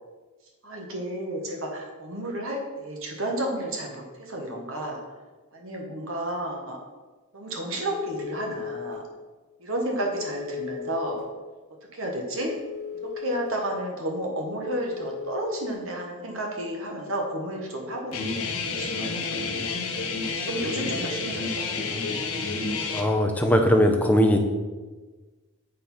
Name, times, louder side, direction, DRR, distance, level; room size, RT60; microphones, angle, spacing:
voice 1, 0.6-5.0 5.5-6.8 7.3-9.0 9.6-11.2 11.9-12.5 13.0-19.2 20.3-21.7, right 1 dB, 60° right, 1 dB, 1.4 m, -32 dB
Telephone, 7.8-8.9 10.1-11.2 12.4-13.5 14.6-15.7, left 8 dB, 30° right, 2.7 m, -37 dB
Guitar, 18.1-23.0, left 4 dB, 70° left, 1.1 m, -29 dB
voice 2, 22.9-24.4, equal, 5° left, 3 dB, 0.7 m, -20 dB
8.2 x 4.5 x 5.5 m, 1.3 s
head